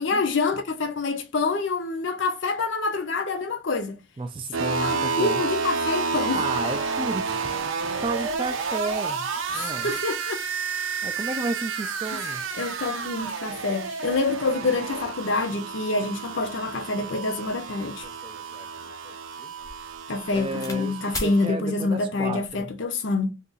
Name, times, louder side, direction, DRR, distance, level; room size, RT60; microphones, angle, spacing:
voice 1, 0.0-4.0 4.6-6.4 9.5-10.4 12.1-12.2 12.5-18.1 20.1-23.3, left 3 dB, 60° left, 0.6 m, -27 dB
voice 2, 4.2-5.4 6.3-9.9 11.0-12.4 20.3-22.7, right 2 dB, 25° right, 0.3 m, -32 dB
sound 1, 4.5-21.5, right 5 dB, 70° right, 0.6 m, -30 dB
sound 2, 18.0-20.8 21.1-21.4 22.2-22.6, left 2 dB, 15° left, 0.7 m, -39 dB
2.7 x 2.5 x 3.8 m
head